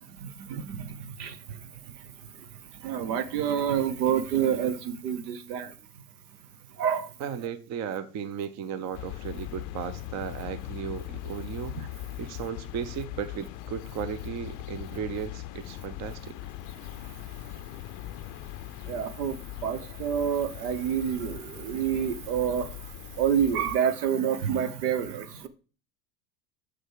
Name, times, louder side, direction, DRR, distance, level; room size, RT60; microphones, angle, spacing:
voice 1, 0.1-2.1 2.5-5.7 6.8-7.1 11.7-11.9 18.8-22.7 23.2-25.5, right 8 dB, 70° right, 1.0 m, -28 dB
voice 2, 7.2-11.7 12.2-16.3, right 8 dB, 35° right, 0.7 m, -35 dB
sound 1, 8.9-23.8, left 14 dB, 40° left, 0.5 m, -40 dB
6.2 x 6.1 x 4.6 m
hypercardioid pair, 90°, 49 cm